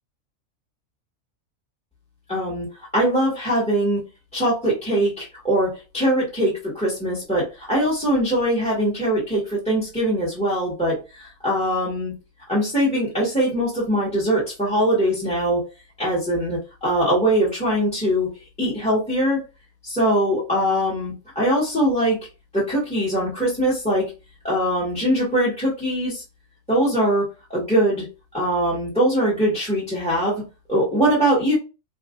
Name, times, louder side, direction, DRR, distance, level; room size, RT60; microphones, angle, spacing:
voice 1, 2.3-2.7 2.9-4.0 4.3-12.1 12.5-15.6 16.0-19.4 19.8-22.2 22.5-24.1 24.4-26.2 26.7-28.0 28.3-30.4 30.7-31.5, right 1 dB, 5° left, -7 dB, 1.5 m, -22 dB
3.7 x 2.9 x 2.5 m, 0.29 s
omnidirectional pair, 1.4 m